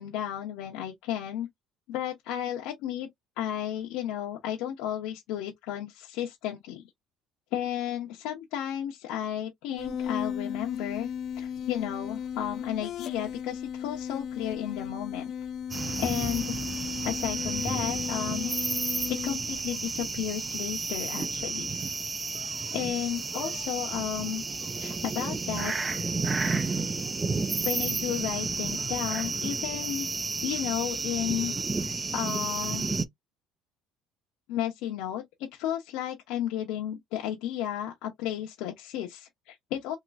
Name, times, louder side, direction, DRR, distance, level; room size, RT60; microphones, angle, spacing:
voice 1, 0.0-1.5 1.9-3.1 3.4-6.8 7.5-11.1 11.4-15.3 16.0-16.5 17.0-18.5 19.2-21.8 22.7-24.4 24.8-25.7 27.6-30.1 30.4-31.5 31.8-32.9 34.5-35.2 35.5-40.0, left 11 dB, 70° left, 0.9 m, -33 dB
sound 1, 9.8-20.2, left 8 dB, 45° left, 0.4 m, -36 dB
sound 2, 15.7-33.0, right 3 dB, 15° right, 0.4 m, -31 dB
3.1 x 2.9 x 2.5 m
cardioid pair, 155°, 0 cm